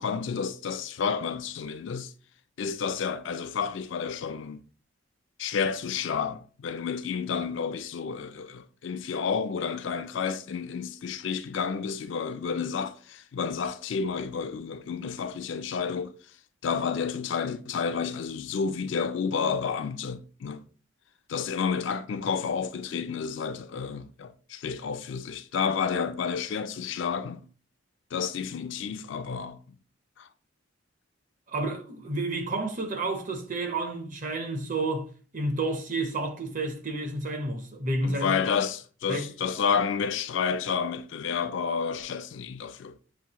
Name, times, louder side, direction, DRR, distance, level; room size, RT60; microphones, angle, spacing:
voice 1, 0.0-2.1 2.6-4.7 5.4-16.1 16.6-20.6 21.3-27.4 28.1-29.8 30.2-30.3 38.0-43.0, left 6 dB, 65° left, 0.4 m, -30 dB
voice 2, 31.5-35.1 35.3-38.4 39.1-39.3, right 2 dB, 40° right, 0.7 m, -30 dB
6.9 x 2.6 x 2.9 m
head